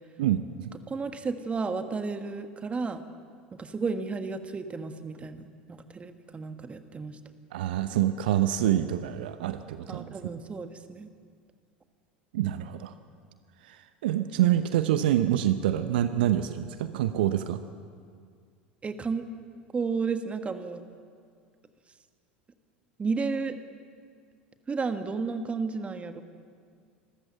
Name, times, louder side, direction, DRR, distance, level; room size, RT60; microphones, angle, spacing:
voice 1, 0.2-0.7 7.5-10.1 12.3-12.9 13.7-13.8 14.0-17.6, right 12 dB, 65° right, 11 dB, 0.8 m, -26 dB
voice 2, 0.9-3.0 3.5-7.2 9.9-11.1 18.8-19.3 19.7-20.8 23.0-23.6 24.7-26.2, right 4 dB, 20° right, 9 dB, 1.5 m, -32 dB
26.0 x 14.0 x 7.5 m, 2.1 s
figure-of-eight pair, 75°, 6 cm